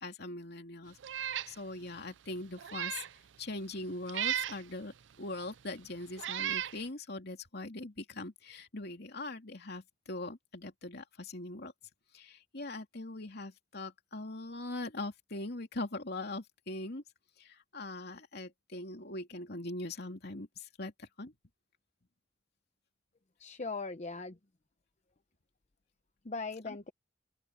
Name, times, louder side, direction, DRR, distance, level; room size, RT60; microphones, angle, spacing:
voice 1, 0.0-3.1 3.4-11.7 12.1-17.0 17.4-21.3 26.7-26.8, left 2 dB, 55° left, 2.9 m, -41 dB
Meow, 1.0-1.5 2.0-2.1 2.6-3.1 4.1-4.6 5.5-5.6 6.2-6.8, right 11 dB, 70° right, 0.5 m, -35 dB
voice 2, 23.4-24.3 26.3-26.9, left 3 dB, 40° left, 0.8 m, -39 dB
open air
head